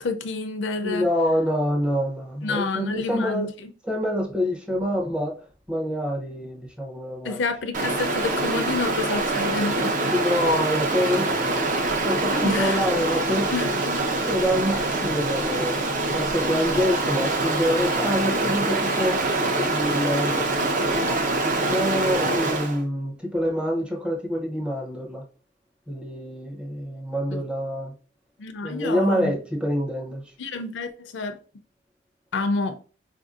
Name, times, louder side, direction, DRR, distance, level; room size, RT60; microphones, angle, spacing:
voice 1, 0.0-1.1 2.4-3.7 7.2-10.0 12.4-12.8 13.5-14.1 27.3-27.4 28.4-29.3 30.4-31.4 32.3-32.8, left 3 dB, 70° left, 0.5 m, -28 dB
voice 2, 0.8-3.5 3.8-5.3 5.7-7.4 10.1-11.4 12.0-13.5 14.1-19.2 19.6-20.4 21.4-25.2 25.9-27.9 28.6-30.2, equal, 5° right, 0.6 m, -26 dB
Stream, 7.7-22.8, right 2 dB, 45° right, 0.6 m, -25 dB
4.4 x 2.6 x 2.4 m
head